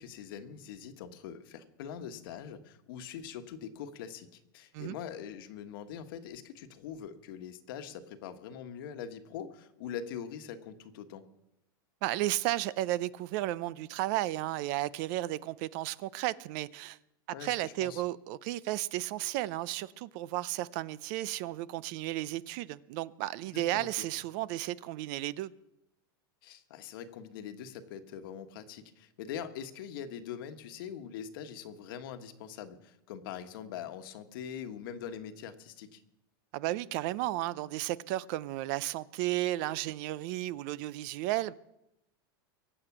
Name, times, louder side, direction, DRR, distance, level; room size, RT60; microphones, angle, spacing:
voice 1, 0.0-11.2 17.3-18.0 23.5-24.1 26.4-36.0, left 8 dB, 70° left, 1.4 m, -43 dB
voice 2, 12.0-17.0 17.4-25.5 36.5-41.5, right 16 dB, 55° right, 0.5 m, -33 dB
23.5 x 7.8 x 6.1 m
supercardioid pair, 145°, 12 cm